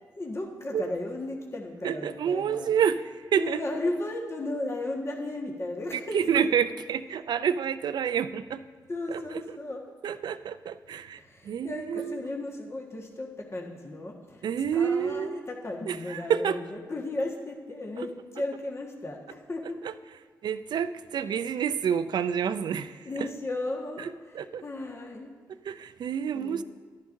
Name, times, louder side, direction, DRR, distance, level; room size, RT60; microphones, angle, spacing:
voice 1, 0.2-2.7 3.4-6.5 8.9-9.8 11.2-14.5 14.7-19.8 23.0-25.3 26.3-26.6, left 2 dB, 35° left, 0 dB, 1.5 m, -35 dB
voice 2, 1.8-3.0 3.3-3.6 5.9-8.6 9.1-9.2 10.0-11.2 11.4-12.2 14.4-15.4 15.9-16.6 20.4-22.9 24.3-24.6 25.7-26.6, right 8 dB, 70° right, 12 dB, 0.4 m, -28 dB
12.5 x 10.5 x 2.6 m, 1.5 s
supercardioid pair, 50°, 8 cm